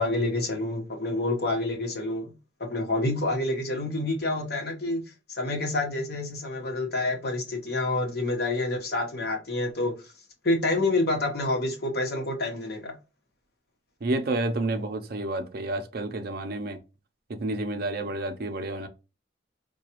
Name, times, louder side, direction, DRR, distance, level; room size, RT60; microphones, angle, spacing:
voice 1, 0.0-2.3 2.6-9.9 10.4-12.9, left 2 dB, 60° left, 1.0 m, -28 dB
voice 2, 14.0-16.8 17.3-18.9, right 2 dB, 55° right, 0.5 m, -30 dB
4.7 x 2.3 x 2.9 m
head